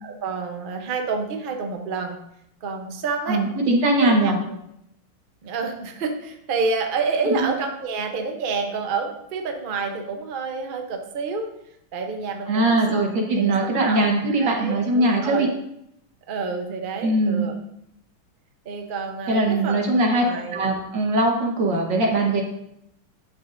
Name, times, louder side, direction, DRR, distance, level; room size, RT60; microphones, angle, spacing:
voice 1, 0.0-2.2 2.6-3.4 4.0-4.6 5.4-11.5 11.9-15.5 16.3-17.6 18.6-20.6, right 4 dB, 85° right, 4 dB, 0.4 m, -29 dB
voice 2, 3.3-4.4 7.2-7.3 12.5-15.5 17.0-17.5 19.3-22.4, right 2 dB, 60° right, 0 dB, 2.0 m, -21 dB
11.5 x 6.1 x 2.6 m, 0.78 s
omnidirectional pair, 2.3 m